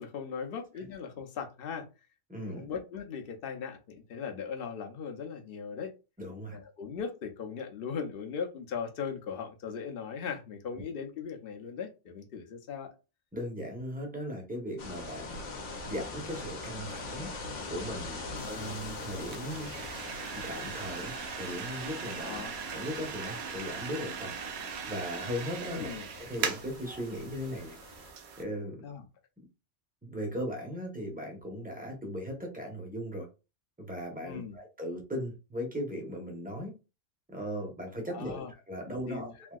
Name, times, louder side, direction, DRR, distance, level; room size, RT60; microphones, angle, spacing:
voice 1, 0.0-1.9 2.5-5.9 6.5-12.9 18.3-18.5 22.2-22.5 25.7-26.1 28.8-29.1 34.2-34.6 38.1-38.5 39.1-39.3, left 6 dB, 55° left, 0.8 m, -38 dB
voice 2, 2.3-2.7 6.2-6.6 13.3-15.4 15.9-17.3 17.7-19.7 20.3-22.4 22.7-24.3 24.9-27.7 28.4-28.8 30.0-33.3 33.8-36.7 37.3-39.6, equal, 10° right, 0.7 m, -38 dB
sound 1, 14.8-28.1, left 3 dB, 75° left, 1.1 m, -43 dB
sound 2, 18.4-28.4, right 6 dB, 65° right, 0.8 m, -40 dB
3.3 x 2.7 x 2.3 m
omnidirectional pair, 1.3 m